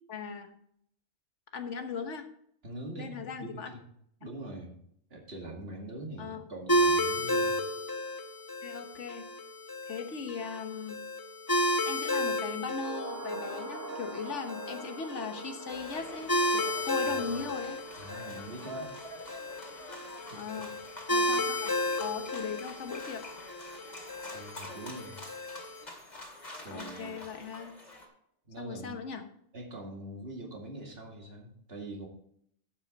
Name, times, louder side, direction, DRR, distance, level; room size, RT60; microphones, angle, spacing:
voice 1, 0.1-0.5 1.5-2.3 3.0-3.7 6.2-6.4 8.6-9.2 9.9-11.0 11.8-17.8 20.3-20.8 21.1-23.2 26.7-27.7 28.6-29.2, left 5 dB, 90° left, 7 dB, 1.5 m, -39 dB
voice 2, 2.6-3.8 4.2-4.8 5.1-7.6 17.1-17.4 18.0-18.9 20.3-20.8 21.3-21.4 24.3-25.2 26.6-27.3 28.5-29.0 29.5-32.1, right 1 dB, 55° right, 0 dB, 2.4 m, -43 dB
sound 1, 6.7-25.8, left 1 dB, 20° left, 0.9 m, -33 dB
sound 2, 12.7-21.2 21.5-21.6, right 2 dB, 15° right, 0.8 m, -45 dB
sound 3, 15.7-28.1, left 1 dB, 35° left, 2.6 m, -47 dB
11.5 x 8.4 x 4.0 m, 0.69 s
omnidirectional pair, 1.2 m